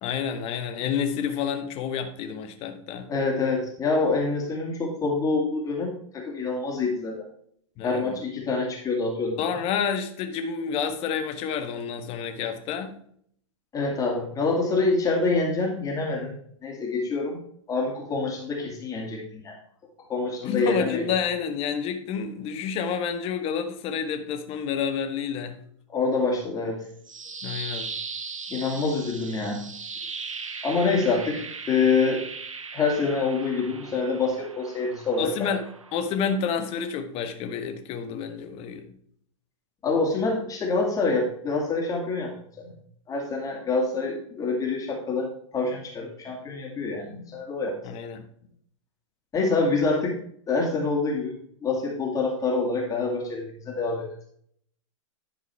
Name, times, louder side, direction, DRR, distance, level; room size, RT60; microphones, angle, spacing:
voice 1, 0.0-3.1 7.8-8.2 9.4-13.0 20.4-25.6 27.4-27.9 35.2-35.6 35.9-38.8 47.8-48.2, left 7 dB, 35° left, 1.5 m, -29 dB
voice 2, 3.1-7.3 7.8-9.6 13.7-16.3 16.6-17.4 17.7-19.6 20.1-21.1 25.9-26.8 28.5-29.6 30.6-32.2 32.7-35.5 39.8-42.3 42.6-42.7 43.1-47.8 49.3-50.1 50.5-54.1, left 3 dB, 20° left, 2.6 m, -26 dB
sound 1, 26.8-36.9, right 5 dB, 85° right, 0.9 m, -39 dB
11.5 x 4.6 x 4.5 m
hypercardioid pair, 110°, 16 cm